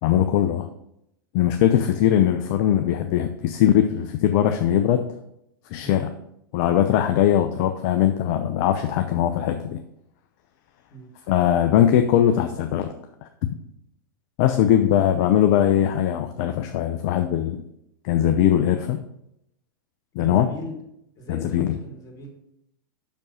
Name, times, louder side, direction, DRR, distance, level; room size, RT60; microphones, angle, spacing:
voice 1, 0.0-0.7 1.3-5.1 5.7-6.1 6.5-9.8 11.3-12.9 13.2-13.3 14.4-17.6 18.0-19.0 20.2-20.5 21.3-21.8, left 10 dB, 50° left, 7 dB, 0.6 m, -20 dB
voice 2, 9.2-9.6 10.9-11.1 20.1-20.8 21.2-22.3, equal, 30° left, 1 dB, 2.6 m, -39 dB
6.1 x 5.3 x 5.6 m, 0.79 s
hypercardioid pair, 95°, 12 cm